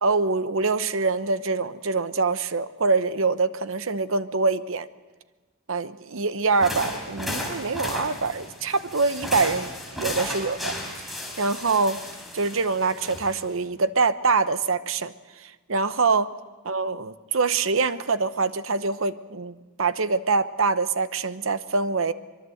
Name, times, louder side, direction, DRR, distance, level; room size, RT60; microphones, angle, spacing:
voice 1, 0.0-4.9 5.7-10.8 11.4-12.0 12.3-16.3 16.7-22.1, right 4 dB, 70° right, 13 dB, 0.9 m, -24 dB
sound 1, 6.5-13.5, left 1 dB, ahead, 4.6 m, -34 dB
24.0 x 22.5 x 7.8 m, 1.3 s
head